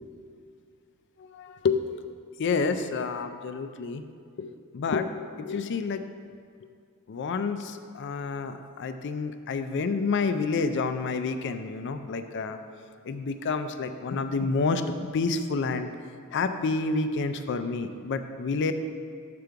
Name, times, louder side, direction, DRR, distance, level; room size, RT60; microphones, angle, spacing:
voice 1, 1.2-1.8 2.4-4.0 4.4-4.5 4.7-6.0 7.1-12.6 13.1-15.9 16.3-18.7, left 4 dB, 55° left, 9 dB, 0.4 m, -29 dB
6.8 x 5.1 x 4.6 m, 2.2 s
head